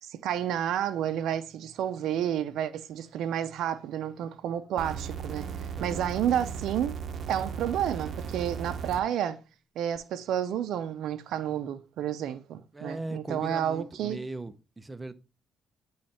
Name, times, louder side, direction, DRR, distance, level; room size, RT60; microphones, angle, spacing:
voice 1, 0.0-5.5 5.8-7.0 7.3-9.4 9.8-14.2, right 10 dB, 80° right, 0.5 m, -30 dB
sound 1, 4.8-9.0 10.0-10.1, right 6 dB, 55° right, 0.9 m, -36 dB
voice 2, 5.8-6.1 12.7-15.2, right 2 dB, 20° right, 0.7 m, -39 dB
8.5 x 3.2 x 4.3 m
cardioid pair, 90°, 0 cm